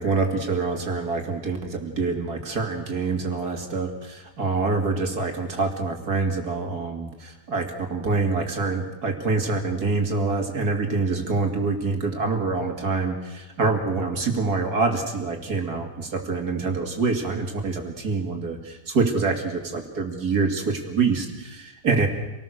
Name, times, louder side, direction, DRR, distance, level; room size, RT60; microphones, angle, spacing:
voice 1, 0.0-22.1, right 3 dB, 50° right, 4 dB, 3.0 m, -26 dB
27.5 x 19.0 x 6.6 m, 1.1 s
omnidirectional pair, 2.2 m